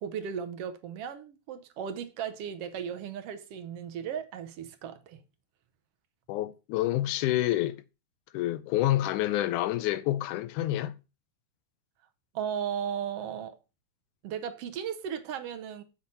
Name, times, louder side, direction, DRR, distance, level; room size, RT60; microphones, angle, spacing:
voice 1, 0.0-5.2 12.3-13.6 14.2-15.8, right 8 dB, 70° right, 1.5 m, -36 dB
voice 2, 6.3-7.8 8.3-11.0, left 14 dB, 90° left, 2.1 m, -28 dB
7.9 x 7.0 x 4.2 m
omnidirectional pair, 3.5 m